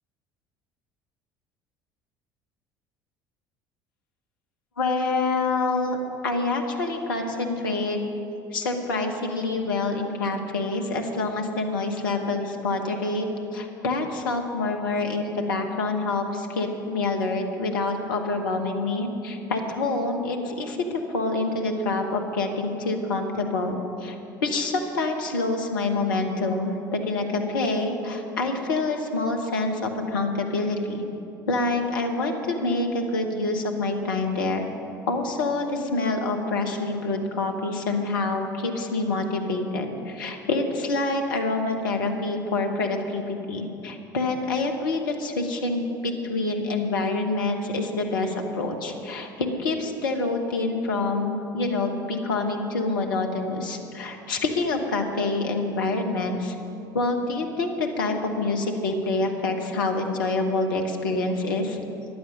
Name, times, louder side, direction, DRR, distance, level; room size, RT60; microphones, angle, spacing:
voice 1, 4.8-6.0 6.2-8.0 8.5-24.1 24.4-31.1 31.5-34.7 35.1-56.5 56.9-61.8, left 3 dB, 70° left, 3 dB, 1.3 m, -26 dB
14.5 x 10.5 x 5.3 m, 2.7 s
figure-of-eight pair, 60°, 11 cm